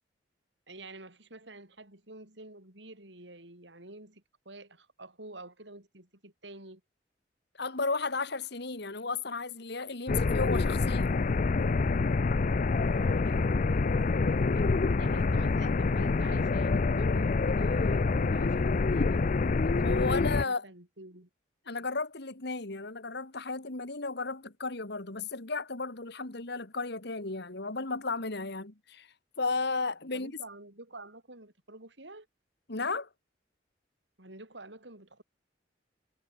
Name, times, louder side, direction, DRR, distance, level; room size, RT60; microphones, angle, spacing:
voice 1, 0.7-6.8 12.8-14.7 15.0-19.2 19.6-21.3 30.1-32.3 34.2-35.2, right 2 dB, 70° right, 6.0 m, -49 dB
voice 2, 7.6-11.2 19.8-20.6 21.7-29.1 29.4-30.3 32.7-33.1, left 3 dB, 65° left, 2.3 m, -34 dB
sound 1, 10.1-20.4, left 3 dB, 45° left, 0.5 m, -26 dB
head